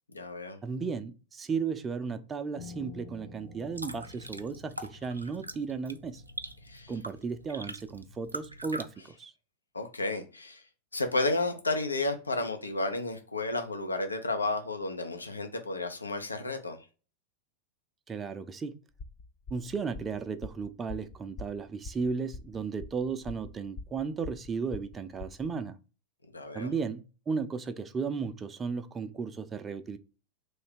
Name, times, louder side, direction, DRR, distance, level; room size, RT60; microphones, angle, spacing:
voice 1, 0.1-0.6 6.6-6.9 9.7-10.6 10.9-16.8 26.3-26.7, left 2 dB, 80° left, 0.6 m, -32 dB
voice 2, 0.6-6.2 6.9-9.3 18.1-18.8 19.5-25.8 26.5-30.0, right 5 dB, 20° right, 0.5 m, -35 dB
Piano, 2.6-7.8, left 4 dB, 45° left, 1.3 m, -51 dB
sound 1, 3.5-8.9, right 1 dB, 85° right, 0.4 m, -43 dB
sound 2, 18.9-25.6, left 3 dB, 30° left, 0.5 m, -44 dB
3.2 x 2.7 x 4.4 m
figure-of-eight pair, 90°, 0 cm